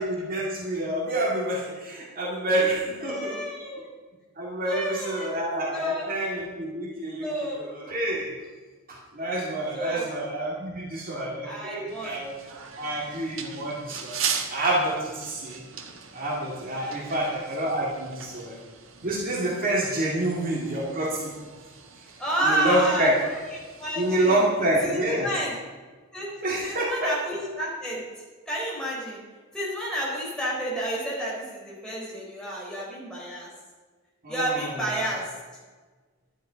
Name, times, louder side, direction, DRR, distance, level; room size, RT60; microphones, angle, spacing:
voice 1, 0.0-3.4 4.4-8.3 8.9-14.2 14.5-15.6 16.1-18.5 19.0-21.3 22.4-23.1 24.0-25.3 26.4-27.1 34.2-34.8, right 1 dB, 45° right, -3 dB, 2.2 m, -27 dB
voice 2, 3.0-3.9 4.6-5.3 5.7-6.1 7.2-7.6 9.7-10.1 11.4-12.2 16.7-17.3 18.4-18.6 20.2-20.4 22.2-23.4 23.8-24.4 24.8-25.6 26.1-26.3 26.6-28.0 28.5-29.2 29.5-33.5 34.3-35.3, right 1 dB, 5° left, -5 dB, 4.4 m, -30 dB
sound 1, 11.9-24.4, right 6 dB, 70° right, 1.4 m, -39 dB
12.0 x 10.5 x 5.1 m, 1.4 s
head